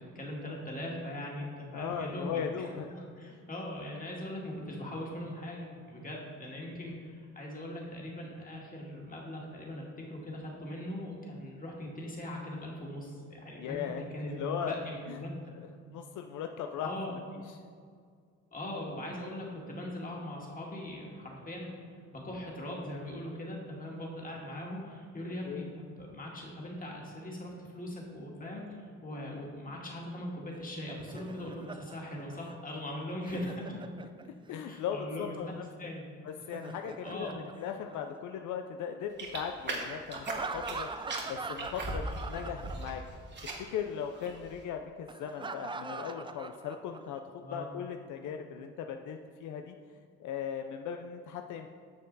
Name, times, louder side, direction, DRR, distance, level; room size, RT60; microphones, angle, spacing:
voice 1, 0.0-15.5 16.8-17.2 18.5-21.8 22.1-33.8 34.7-35.3 35.8-36.1 37.0-37.4 47.4-47.7, left 1 dB, 25° left, -2 dB, 2.2 m, -40 dB
voice 2, 1.7-2.9 6.6-7.0 13.6-14.8 15.1-15.2 15.9-16.9 17.5-17.6 25.4-25.7 29.3-29.4 34.2-35.7 36.2-40.9 41.2-43.0 43.4-51.7, left 8 dB, 75° left, 5 dB, 0.5 m, -38 dB
Laughter, 30.5-34.6 36.3-38.4 40.1-43.2 43.4-43.6 45.1-47.2, right 4 dB, 15° right, 0.4 m, -42 dB
sound 1, 39.2-40.8 41.1-42.9 43.2-43.7 44.1-44.5, right 2 dB, 35° right, 1.5 m, -39 dB
9.6 x 6.5 x 4.0 m, 2.1 s
cardioid pair, 90°, 30 cm